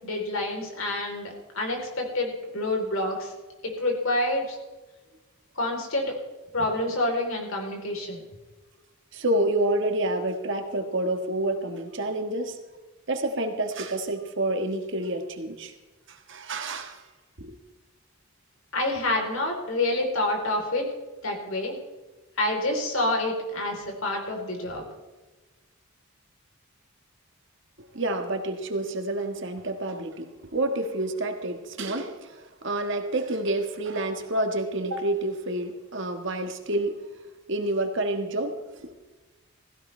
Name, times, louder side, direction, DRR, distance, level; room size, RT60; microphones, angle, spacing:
voice 1, 0.0-3.3 3.6-4.6 5.6-6.2 6.5-8.2 18.7-20.9 21.2-21.8 22.4-24.8, left 1 dB, 65° left, 3.7 m, -28 dB
voice 2, 9.1-12.6 13.1-15.7 16.1-17.0 17.4-17.5 27.8-37.0 37.5-38.9, right 1 dB, 55° right, 1.5 m, -28 dB
16.5 x 15.5 x 3.3 m
head